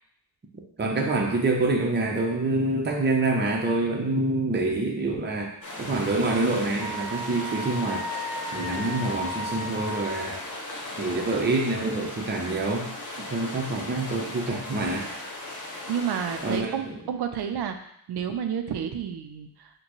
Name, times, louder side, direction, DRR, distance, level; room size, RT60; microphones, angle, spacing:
voice 1, 0.8-5.5 5.8-8.1 8.5-10.4 11.0-15.1 16.4-17.0, right 2 dB, 25° right, 0 dB, 0.7 m, -26 dB
sound 1, 5.6-16.6, left 2 dB, 50° left, 1.1 m, -37 dB
Wind instrument woodwind instrument, 6.8-10.3, equal, 5° left, 1.6 m, -35 dB
voice 2, 15.9-19.7, right 8 dB, 80° right, 7 dB, 0.6 m, -30 dB
6.4 x 2.2 x 3.1 m, 0.74 s
cardioid pair, 90°, 39 cm